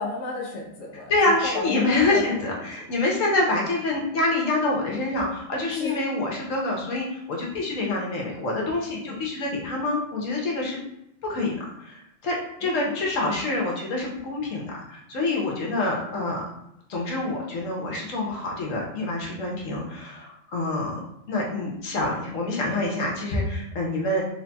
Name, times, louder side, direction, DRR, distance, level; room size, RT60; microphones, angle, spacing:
voice 1, 0.0-2.2 5.7-6.0 8.9-9.2 12.6-12.9, left 2 dB, 75° left, -2 dB, 1.0 m, -33 dB
voice 2, 1.1-10.8 11.2-11.5 11.8-16.5 16.9-21.0 21.3-24.2, left 2 dB, 90° left, -2 dB, 1.3 m, -26 dB
4.0 x 3.3 x 2.2 m, 0.81 s
omnidirectional pair, 1.3 m